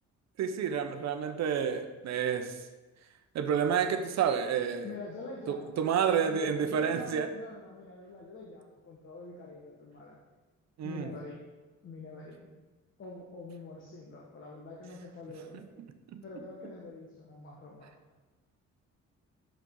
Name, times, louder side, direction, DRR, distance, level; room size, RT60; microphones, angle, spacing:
voice 1, 0.4-2.6 3.3-4.9 5.5-7.3 10.8-11.1 16.1-16.2, right 7 dB, 65° right, 8 dB, 0.8 m, -29 dB
voice 2, 4.8-5.8 6.2-10.2 10.8-11.4 11.8-12.5 13.0-15.8 16.2-17.9, left 3 dB, 40° left, -3 dB, 1.4 m, -45 dB
11.0 x 6.7 x 3.8 m, 1.2 s
cardioid pair, 175°, 30 cm